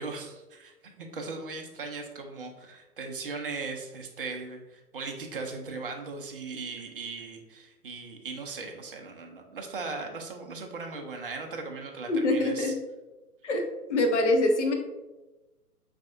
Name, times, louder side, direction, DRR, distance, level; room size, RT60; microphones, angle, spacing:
voice 1, 0.0-12.7, right 4 dB, 35° right, 3 dB, 0.5 m, -38 dB
voice 2, 12.1-12.7 13.4-13.6 13.9-14.7, left 2 dB, 50° left, 4 dB, 0.6 m, -24 dB
4.2 x 3.3 x 2.4 m, 1.1 s
figure-of-eight pair, 130°, 47 cm